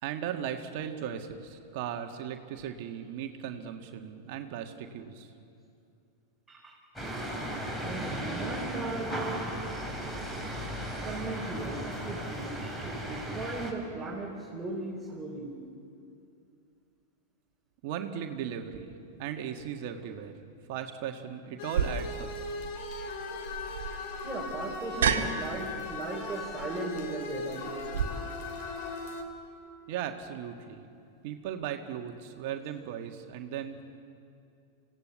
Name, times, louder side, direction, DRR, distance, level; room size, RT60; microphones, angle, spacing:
voice 1, 0.0-5.3 17.8-18.9 19.2-20.3 20.7-22.3 29.9-30.9 31.2-33.9, right 9 dB, 55° right, 4 dB, 1.8 m, -37 dB
sound 1, 7.0-13.7, equal, 10° left, 5.4 m, -36 dB
voice 2, 7.8-9.5 11.0-15.5 24.2-27.7, right 3 dB, 10° right, -5 dB, 4.5 m, -37 dB
sound 2, 21.6-29.2, left 3 dB, 50° left, 3.1 m, -38 dB
sound 3, 21.7-28.0, right 7 dB, 70° right, 1.7 m, -33 dB
27.5 x 16.5 x 8.3 m, 2.5 s
figure-of-eight pair, 95°, 0 cm